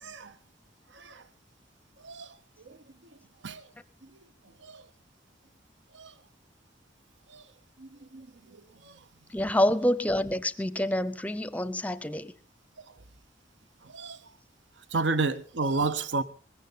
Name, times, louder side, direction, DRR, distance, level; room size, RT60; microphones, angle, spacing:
voice 1, 0.0-0.3 1.0-1.2 2.0-2.3 2.7-2.8 3.4-3.6 4.6-4.8 6.0-6.1 7.3-7.4 7.8-8.3 13.9-14.2 14.9-16.2, right 3 dB, 70° right, 0.9 m, -31 dB
voice 2, 9.3-12.3, left 1 dB, 10° left, 0.7 m, -27 dB
19.5 x 15.0 x 4.0 m
head